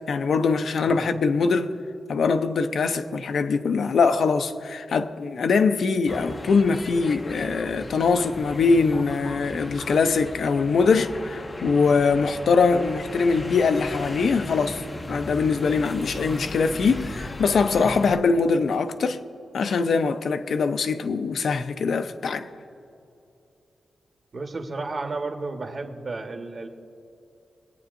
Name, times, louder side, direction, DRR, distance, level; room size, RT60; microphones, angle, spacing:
voice 1, 0.1-1.7 2.1-14.8 15.1-19.2 19.5-22.5, left 4 dB, 70° left, 0.5 m, -22 dB
sound 1, 6.1-18.2, left 1 dB, 20° left, 0.5 m, -37 dB
voice 2, 24.3-26.7, right 3 dB, 40° right, 1.2 m, -32 dB
23.0 x 8.7 x 2.6 m
wide cardioid pair, 140°, 0 cm